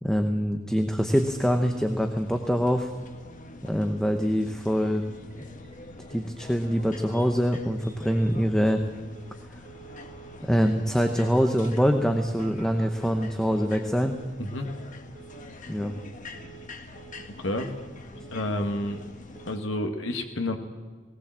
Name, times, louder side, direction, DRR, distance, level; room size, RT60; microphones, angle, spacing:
voice 1, 0.0-2.9 3.6-5.0 6.1-8.8 10.4-14.2 15.7-15.9, equal, 5° left, 5 dB, 1.0 m, -24 dB
sound 1, 1.0-19.6, left 2 dB, 40° left, 1.6 m, -45 dB
Telephone, 4.2-4.3 4.6-4.7 4.9-5.0 5.3-5.7 6.0-6.1 6.4-6.7 7.1-7.2 7.7-8.4 9.1-9.4 9.6-10.4 11.0-13.7 13.9-14.3 14.5-14.9 15.1-15.5 15.7-16.1 16.3-16.7 16.9-17.3 17.5-18.5 18.7-19.1 19.3-19.6, right 7 dB, 60° right, 1.9 m, -49 dB
voice 2, 17.4-17.7 18.3-19.0 19.4-20.6, left 1 dB, 70° left, 4 dB, 1.7 m, -29 dB
19.0 x 18.5 x 7.5 m, 1.5 s
head